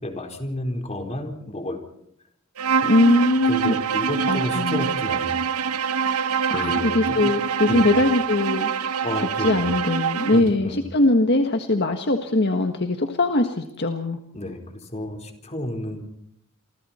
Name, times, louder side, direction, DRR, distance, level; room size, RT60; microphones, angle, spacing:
voice 1, 0.0-1.8 2.8-2.9 3.5-5.5 6.5-7.3 7.7-8.0 9.0-9.7 10.3-10.8 14.3-16.0, left 1 dB, 30° left, 4 dB, 4.2 m, -31 dB
Bowed string instrument, 2.6-10.5, right 6 dB, 85° right, 0.9 m, -25 dB
voice 2, 2.8-3.7 4.3-4.9 6.5-8.7 9.2-14.2, left 2 dB, 50° left, 5 dB, 1.6 m, -21 dB
28.5 x 25.0 x 4.4 m, 0.71 s
head